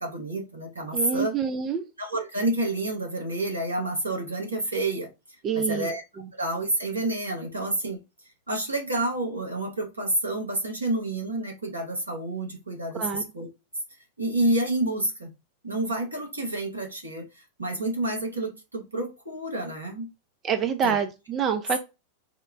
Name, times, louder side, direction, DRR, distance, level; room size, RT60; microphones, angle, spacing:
voice 1, 0.0-1.4 2.0-5.1 5.5-6.0 6.3-8.0 8.5-13.5 14.2-15.3 15.6-20.1 20.8-21.0, right 1 dB, 80° right, 0 dB, 1.4 m, -29 dB
voice 2, 0.9-1.8 5.4-5.9 12.9-13.2 20.4-21.8, right 7 dB, 30° right, 7 dB, 0.5 m, -26 dB
4.3 x 2.2 x 3.6 m, 0.26 s
figure-of-eight pair, 90°, 0 cm